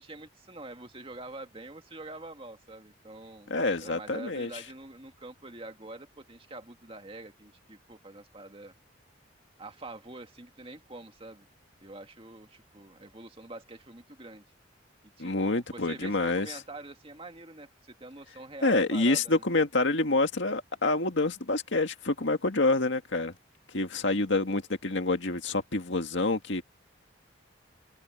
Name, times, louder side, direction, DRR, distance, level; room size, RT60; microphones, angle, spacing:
voice 1, 0.0-3.5 3.8-8.7 9.6-11.5 11.8-14.5 15.0-19.4, right 2 dB, 30° right, 2.0 m, -45 dB
voice 2, 3.5-4.5 15.2-16.6 18.6-23.3 23.7-26.6, left 2 dB, 70° left, 2.0 m, -27 dB
head